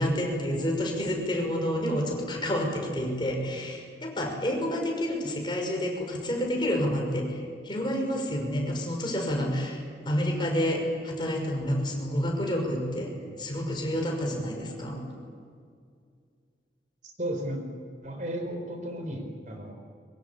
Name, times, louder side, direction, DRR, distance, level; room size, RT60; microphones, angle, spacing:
voice 1, 0.0-13.1 13.4-15.0, equal, 25° left, 1 dB, 5.9 m, -29 dB
voice 2, 17.0-17.6 18.0-19.7, right 1 dB, 45° right, 4 dB, 4.1 m, -34 dB
24.5 x 24.0 x 8.5 m, 2.2 s
head